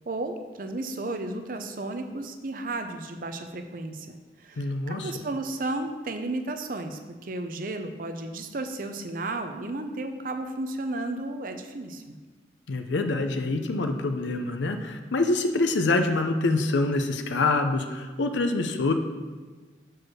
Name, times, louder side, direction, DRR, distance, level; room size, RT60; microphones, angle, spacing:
voice 1, 0.1-4.1 4.4-12.2, right 2 dB, 50° right, 6 dB, 0.6 m, -33 dB
voice 2, 4.6-5.1 12.7-18.9, left 2 dB, 90° left, 6 dB, 0.6 m, -25 dB
6.4 x 4.6 x 6.1 m, 1.4 s
head